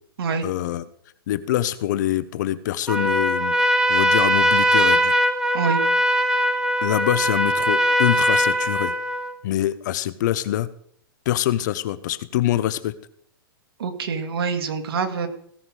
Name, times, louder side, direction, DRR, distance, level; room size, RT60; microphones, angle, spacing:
voice 1, 0.4-0.9 1.3-3.6 3.9-5.1 6.8-9.0 9.4-10.7 11.3-12.9, left 13 dB, 50° left, 16 dB, 0.8 m, -24 dB
Trumpet, 2.9-9.3, equal, 5° right, 0.7 m, -20 dB
voice 2, 13.8-15.3, right 5 dB, 80° right, 7 dB, 1.9 m, -25 dB
17.0 x 7.3 x 4.9 m, 0.63 s
hypercardioid pair, 160°, 12 cm